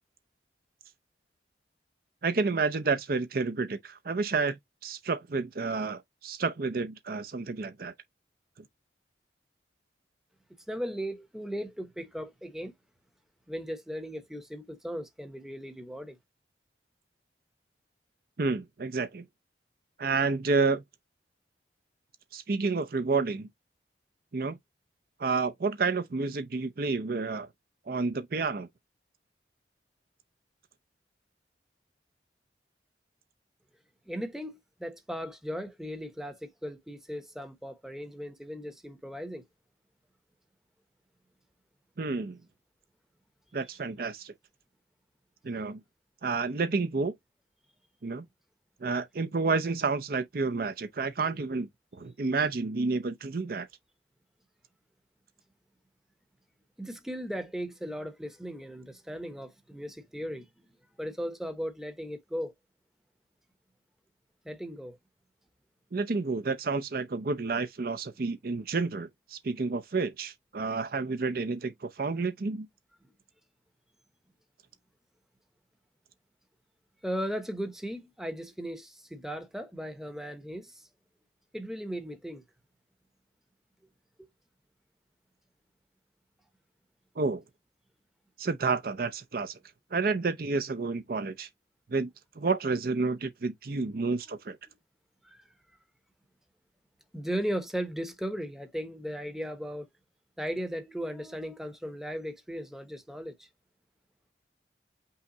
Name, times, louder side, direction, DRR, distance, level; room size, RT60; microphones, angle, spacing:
voice 1, 2.2-7.9 18.4-19.2 20.0-20.8 22.3-23.5 24.3-24.6 25.2-27.5 27.9-28.7 42.0-42.4 43.5-44.3 45.4-45.8 46.2-47.1 48.0-48.3 48.8-53.7 65.9-72.7 87.2-87.4 88.4-89.6 89.9-91.5 91.9-92.1 92.4-94.6, right 4 dB, 55° right, 0.5 m, -30 dB
voice 2, 10.7-12.7 13.5-16.2 34.1-39.4 56.8-60.5 61.0-62.5 64.4-65.0 77.0-80.8 81.5-82.4 84.2-84.3 95.2-95.4 97.1-99.9 100.4-103.5, equal, ahead, 0.7 m, -37 dB
5.6 x 2.2 x 3.8 m
head